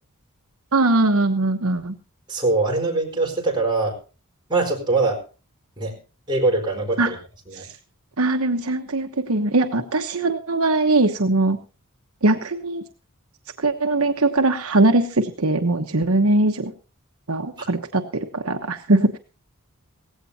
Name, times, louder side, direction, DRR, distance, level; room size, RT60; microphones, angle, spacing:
voice 1, 0.7-1.9 7.0-7.1 7.5-7.6 8.2-11.6 12.2-12.8 13.6-16.7 17.3-19.2, right 2 dB, 70° right, 5 dB, 1.1 m, -21 dB
voice 2, 2.3-4.0 4.5-5.2 5.8-6.0 6.3-7.2 7.5-7.6, right 3 dB, 20° right, -1 dB, 4.6 m, -22 dB
17.5 x 16.0 x 2.8 m, 0.33 s
head